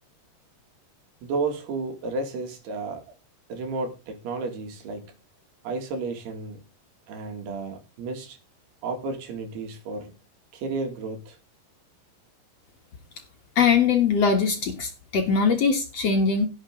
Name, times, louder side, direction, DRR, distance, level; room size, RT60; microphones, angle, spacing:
voice 1, 1.2-3.0 3.5-5.1 5.6-6.7 7.1-8.4 8.8-10.2 10.5-11.4, right 3 dB, 70° right, 4.2 m, -32 dB
voice 2, 13.6-16.5, left 5 dB, 55° left, 1.9 m, -21 dB
17.0 x 7.3 x 3.7 m
omnidirectional pair, 5.0 m